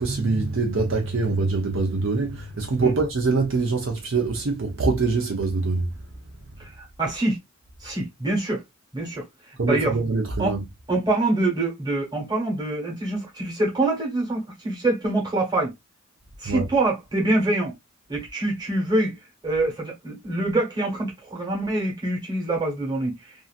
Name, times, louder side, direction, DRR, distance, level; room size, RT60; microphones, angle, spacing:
voice 1, 0.0-5.9 9.6-10.6 16.4-16.7, right 3 dB, 60° right, 0.6 m, -24 dB
voice 2, 6.6-7.4 7.8-8.6 8.9-9.3 9.6-10.0 10.4-10.5 10.9-15.7 16.4-17.7 18.1-19.1 19.4-23.3, right 2 dB, 20° right, 1.2 m, -25 dB
2.7 x 2.6 x 2.4 m
head